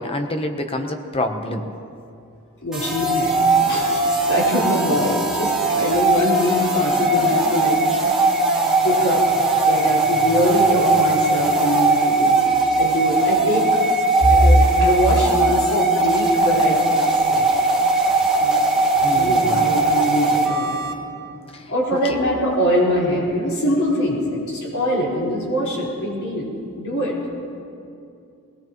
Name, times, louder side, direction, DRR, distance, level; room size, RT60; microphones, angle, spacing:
voice 1, 0.0-1.7 19.0-19.6 21.5-21.7 22.0-22.2, left 1 dB, 25° left, 5 dB, 0.9 m, -27 dB
voice 2, 2.6-3.4 3.6-7.8 8.8-9.3 9.6-12.4 12.8-13.7 14.2-17.5 18.4-18.6 19.1-21.2 21.7-26.5 26.7-27.2, equal, 70° left, -6 dB, 4.6 m, -22 dB
sound 1, 2.7-20.9, right 2 dB, 5° right, 1.8 m, -19 dB
21.0 x 19.5 x 3.1 m, 2.5 s
head